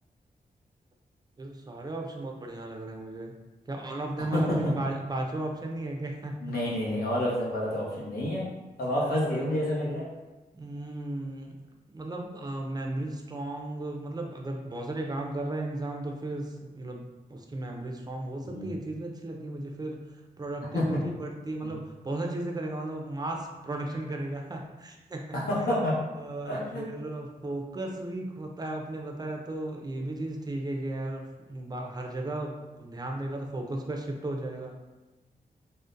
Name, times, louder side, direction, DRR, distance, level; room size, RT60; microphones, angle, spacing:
voice 1, 1.4-3.3 3.7-6.5 9.0-9.5 10.5-11.6 11.9-17.0 17.3-25.4 26.2-34.7, right 2 dB, 25° right, 1 dB, 0.5 m, -35 dB
voice 2, 4.3-4.7 6.4-8.5 8.8-10.1 18.4-18.7 20.7-21.0 25.3-26.0 26.4-26.8, left 1 dB, 80° left, -5 dB, 0.9 m, -28 dB
3.7 x 2.1 x 2.5 m, 1.2 s
cardioid pair, 85°, 16 cm